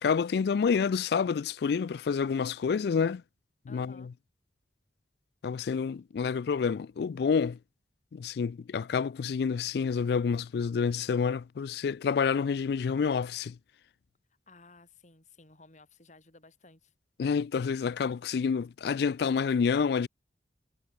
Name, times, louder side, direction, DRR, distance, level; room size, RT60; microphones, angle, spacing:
voice 1, 0.0-3.2 3.7-4.1 5.4-7.6 8.1-13.6 17.2-20.1, left 6 dB, 65° left, 0.3 m, -28 dB
voice 2, 3.7-4.1 14.5-16.9, left 3 dB, 40° left, 3.4 m, -56 dB
head